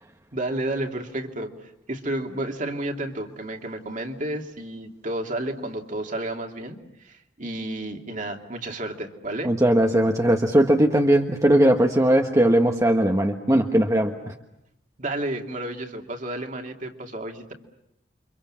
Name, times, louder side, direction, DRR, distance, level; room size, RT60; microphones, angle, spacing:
voice 1, 0.3-9.5 15.0-17.5, right 1 dB, 45° right, 3 dB, 2.6 m, -31 dB
voice 2, 9.4-14.3, right 1 dB, 20° right, 3 dB, 1.4 m, -19 dB
30.0 x 25.0 x 7.5 m, 0.80 s
head